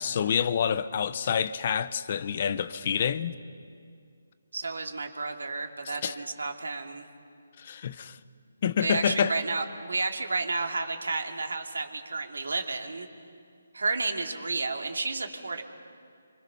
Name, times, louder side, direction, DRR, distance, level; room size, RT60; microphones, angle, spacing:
voice 1, 0.0-3.3 5.9-6.2 7.6-8.2 8.6-9.3, left 7 dB, 40° left, 0.9 m, -27 dB
voice 2, 4.5-7.0 8.8-13.1 13.7-15.6, right 3 dB, 75° right, 2.6 m, -31 dB
27.0 x 24.5 x 5.7 m
figure-of-eight pair, 155°, 0 cm